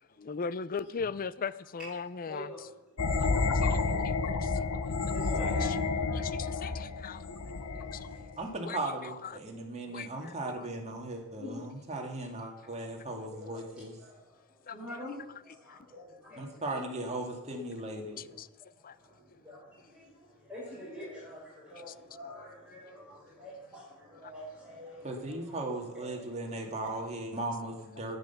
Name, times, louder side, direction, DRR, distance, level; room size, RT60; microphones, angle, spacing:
voice 1, 0.2-2.5 3.2-3.8 4.0-4.9 5.6-5.8 6.1-7.2 7.9-8.1 8.6-9.4 9.9-10.7 14.7-14.8 18.2-18.5 18.8-19.0 21.9-22.0, left 5 dB, 40° left, 0.4 m, -39 dB
voice 2, 2.2-8.4 9.5-9.9 11.4-11.9 12.4-16.7 17.5-17.6 18.0-26.9, left 1 dB, ahead, 6.2 m, -48 dB
sound 1, 3.0-8.4, left 4 dB, 85° left, 0.9 m, -30 dB
voice 3, 8.4-13.9 16.3-18.3 23.1-23.2 25.0-28.2, right 2 dB, 30° right, 2.2 m, -37 dB
10.0 x 10.0 x 7.0 m
head